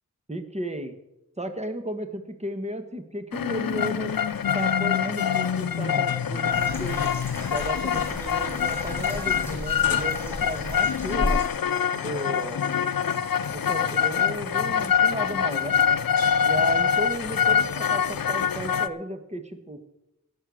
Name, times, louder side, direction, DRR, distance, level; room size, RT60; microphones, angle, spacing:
voice 1, 0.3-1.0 1.4-4.1 4.5-7.1 7.5-11.4 11.9-12.6 13.2-15.8 16.4-19.9, right 1 dB, 20° right, 7 dB, 1.4 m, -34 dB
sound 1, 3.3-18.9, left 8 dB, 85° left, 0.6 m, -25 dB
sound 2, 6.5-11.5, left 1 dB, 5° left, 3.5 m, -34 dB
17.5 x 6.7 x 6.4 m, 0.90 s
wide cardioid pair, 65°, 34 cm